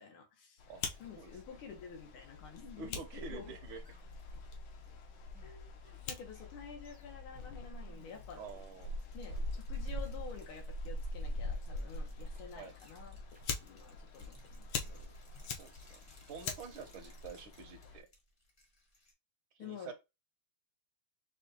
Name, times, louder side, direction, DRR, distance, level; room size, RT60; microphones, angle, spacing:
voice 1, 0.0-0.6 1.0-3.5 5.4-5.7 6.1-8.4 9.1-13.2 13.6-15.1 17.0-17.1 19.6-19.9, left 6 dB, 90° left, 1.9 m, -50 dB
Fire, 0.6-18.0, left 2 dB, 70° left, 1.2 m, -43 dB
sound 1, 2.3-2.5 2.9-3.1 3.3-4.6 4.8-9.0 9.3-9.5 9.8-10.0 10.3-10.5 10.8-11.0 11.3-11.5 11.8-12.0 12.3-12.5 12.8-13.0 13.3-13.5 13.8-14.0 14.3-15.5 15.8-15.9 16.3-16.4 16.8-17.0 17.3-17.5 17.8-18.0, right 1 dB, 10° right, 0.3 m, -67 dB
voice 2, 2.8-3.8 8.4-9.0 9.3-9.4 12.5-12.7 15.5-16.0 16.3-18.1 19.5-19.9, right 5 dB, 75° right, 1.6 m, -48 dB
sound 2, 4.0-5.4 8.0-19.1, left 1 dB, 30° left, 0.7 m, -66 dB
5.7 x 2.3 x 2.7 m
omnidirectional pair, 2.3 m